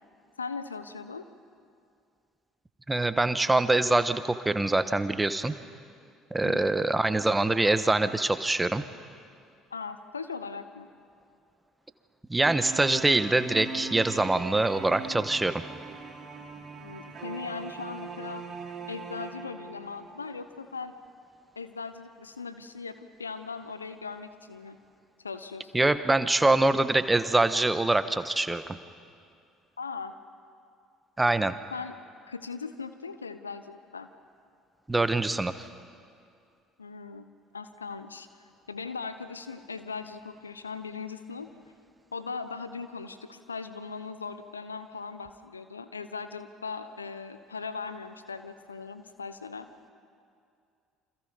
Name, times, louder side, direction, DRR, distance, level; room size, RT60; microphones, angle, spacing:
voice 1, 0.4-1.3 6.4-6.7 9.7-10.9 16.7-18.4 18.9-20.9 21.6-24.8 25.2-25.8 29.8-30.1 31.7-32.0 32.3-34.1 36.8-38.3 38.7-41.5 42.1-49.7, left 5 dB, 85° left, 11 dB, 0.9 m, -39 dB
voice 2, 2.9-5.5 6.3-8.8 12.3-15.6 25.7-28.8 31.2-31.5 34.9-35.7, right 2 dB, 15° right, 11 dB, 1.3 m, -24 dB
sound 1, 12.4-20.2, right 4 dB, 45° right, 3.4 m, -40 dB
28.5 x 26.0 x 5.3 m, 2.4 s
figure-of-eight pair, 55°, 0 cm